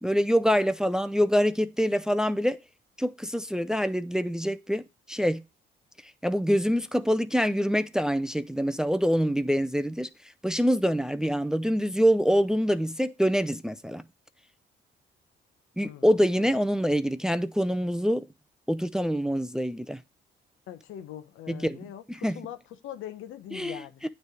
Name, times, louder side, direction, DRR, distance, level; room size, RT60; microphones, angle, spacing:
voice 1, 0.0-2.6 3.0-4.8 5.1-5.4 6.2-10.1 10.4-14.0 15.8-18.3 18.7-20.0 21.5-21.8 22.2-22.4 23.5-23.8, equal, 5° right, 0.4 m, -25 dB
voice 2, 15.8-16.5 20.7-24.0, left 11 dB, 85° left, 0.8 m, -42 dB
9.3 x 3.3 x 4.7 m
cardioid pair, 90°, 20 cm